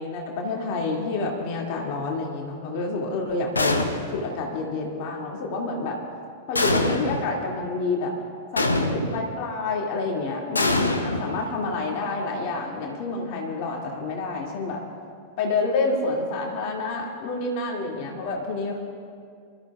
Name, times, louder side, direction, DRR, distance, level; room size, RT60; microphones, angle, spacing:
voice 1, 0.0-6.0 6.5-8.1 8.5-14.8 15.4-18.8, left 3 dB, 45° left, -1 dB, 2.5 m, -28 dB
sound 1, 3.6-4.3 6.6-7.3 8.6-9.3 10.6-11.8, left 2 dB, 80° left, 1.0 m, -24 dB
27.5 x 13.0 x 2.5 m, 2.2 s
figure-of-eight pair, 90°, 0 cm